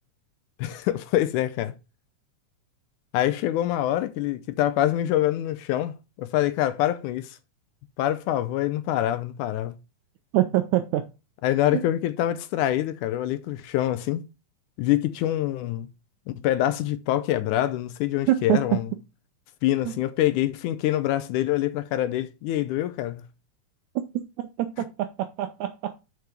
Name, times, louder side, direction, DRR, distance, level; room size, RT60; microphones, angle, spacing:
voice 1, 0.6-1.7 3.1-7.4 8.0-9.7 11.4-14.2 14.8-15.9 16.4-18.9 19.6-23.2, left 13 dB, 80° left, 1.9 m, -25 dB
voice 2, 10.3-11.1 11.7-11.8 18.3-18.8 19.8-19.9 24.4-25.9, right 14 dB, 80° right, 1.7 m, -25 dB
6.7 x 4.7 x 5.8 m
omnidirectional pair, 3.8 m